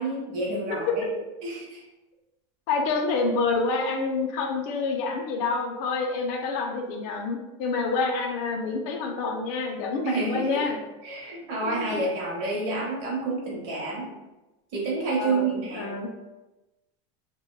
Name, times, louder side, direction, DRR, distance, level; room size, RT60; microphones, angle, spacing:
voice 1, 0.0-1.0 1.4-1.8 10.0-10.6 11.0-14.1 14.7-16.0, right 3 dB, 45° right, -4 dB, 0.9 m, -29 dB
voice 2, 0.7-1.2 2.7-10.8 11.6-12.0 15.2-16.1, left 4 dB, 50° left, 2 dB, 0.5 m, -28 dB
3.3 x 2.2 x 2.2 m, 1.0 s
supercardioid pair, 170°, 16 cm